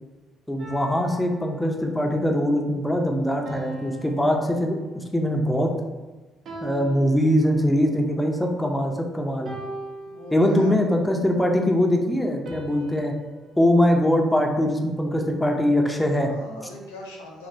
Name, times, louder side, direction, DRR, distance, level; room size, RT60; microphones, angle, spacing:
voice 1, 0.5-5.7 6.6-9.5 10.3-13.1 13.6-16.3, equal, 10° left, 2 dB, 0.4 m, -22 dB
sound 1, 0.6-2.1 3.5-5.3 6.5-7.9 9.5-10.9 12.5-14.7, right 1 dB, 60° right, 0.5 m, -41 dB
voice 2, 10.1-10.9 15.9-17.5, left 1 dB, 85° left, -3 dB, 0.4 m, -40 dB
2.7 x 2.1 x 2.5 m, 1.2 s
hypercardioid pair, 45°, 0 cm